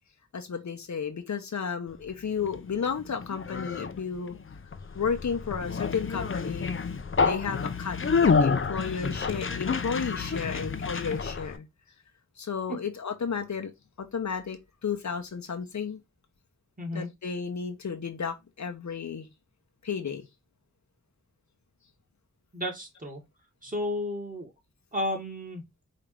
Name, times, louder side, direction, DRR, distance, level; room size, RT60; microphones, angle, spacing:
voice 1, 0.3-4.4 4.9-6.7 7.2-11.7 12.4-13.7 14.0-16.0 16.9-19.3 19.8-20.2, left 6 dB, 75° left, 0.9 m, -33 dB
Conversation, 2.1-11.6, left 5 dB, 45° left, 0.6 m, -29 dB
voice 2, 16.8-17.1 22.5-23.2 23.6-24.5 24.9-25.6, left 1 dB, 30° right, 2.2 m, -32 dB
5.1 x 2.8 x 3.3 m
cardioid pair, 45°, 29 cm